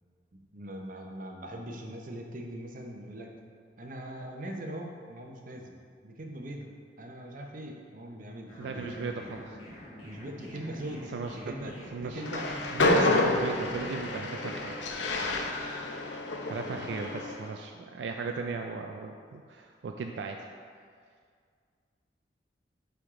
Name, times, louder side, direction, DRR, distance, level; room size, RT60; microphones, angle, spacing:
voice 1, 0.3-3.3 3.8-5.8 6.0-6.7 7.0-9.1 10.0-13.1 16.6-16.9, right 1 dB, 50° right, 2 dB, 0.7 m, -41 dB
sound 1, 8.5-14.1, equal, 30° left, 1.5 m, -47 dB
voice 2, 8.6-9.4 11.1-12.2 12.7-14.8 16.5-20.4, right 4 dB, 75° right, 3 dB, 0.3 m, -36 dB
Train, 12.2-17.4, left 2 dB, 85° left, 0.6 m, -29 dB
9.3 x 3.5 x 3.7 m, 2.1 s
head